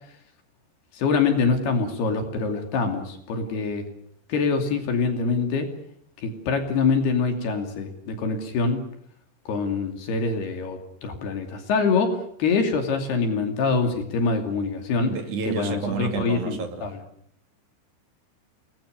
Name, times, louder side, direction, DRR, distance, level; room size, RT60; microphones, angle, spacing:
voice 1, 0.9-3.9 4.3-5.7 6.2-8.8 9.5-15.1 15.5-16.9, left 4 dB, 60° left, 5 dB, 4.5 m, -25 dB
voice 2, 15.0-16.9, right 5 dB, 45° right, 6 dB, 3.5 m, -30 dB
28.5 x 20.5 x 6.8 m, 0.68 s
omnidirectional pair, 5.3 m